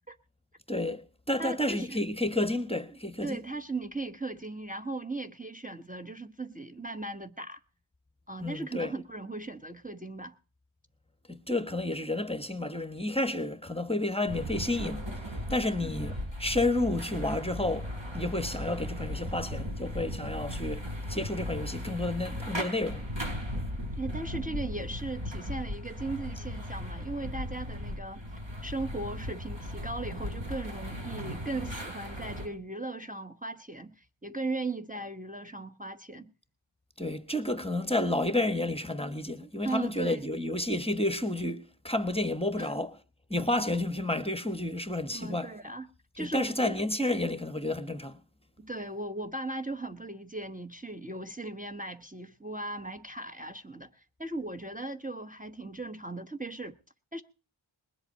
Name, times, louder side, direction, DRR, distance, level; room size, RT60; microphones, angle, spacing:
voice 1, 0.7-3.4 8.4-8.9 11.3-23.1 37.0-42.9 43.3-45.5 46.2-48.2, left 1 dB, 10° left, 1.3 m, -31 dB
voice 2, 1.4-2.1 3.2-7.6 8.3-10.3 15.6-15.9 24.0-28.3 28.6-36.3 39.6-40.3 42.6-42.7 45.1-45.9 46.2-46.7 48.6-56.7 57.1-57.2, right 2 dB, 15° right, 1.1 m, -38 dB
sound 1, 14.3-32.5, equal, 65° right, 4.4 m, -37 dB
20.5 x 8.0 x 5.5 m
wide cardioid pair, 45°, 49 cm